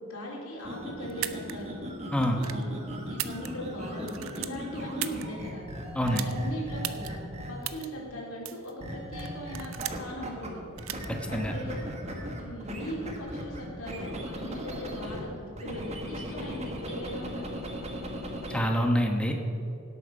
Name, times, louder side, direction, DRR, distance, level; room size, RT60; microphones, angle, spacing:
voice 1, 0.0-1.8 2.3-5.6 6.0-7.2 7.5-10.6 11.3-11.8 12.4-17.4, equal, 80° left, -2 dB, 3.5 m, -39 dB
sound 1, 0.6-7.8 8.8-10.5 10.8-15.2 15.6-18.6, equal, 30° right, 1.6 m, -38 dB
sound 2, 1.1-1.5 2.2-2.6 3.1-3.8 4.0-5.2 6.1-6.3 6.8-7.1 7.6-7.9 8.4-8.7 9.2-10.1 10.8-11.1, right 13 dB, 75° right, 0.7 m, -35 dB
voice 2, 2.1-2.4 5.9-6.3 11.1-11.5 18.5-19.3, equal, 5° left, 2 dB, 1.1 m, -26 dB
17.5 x 8.4 x 5.4 m, 2.8 s
head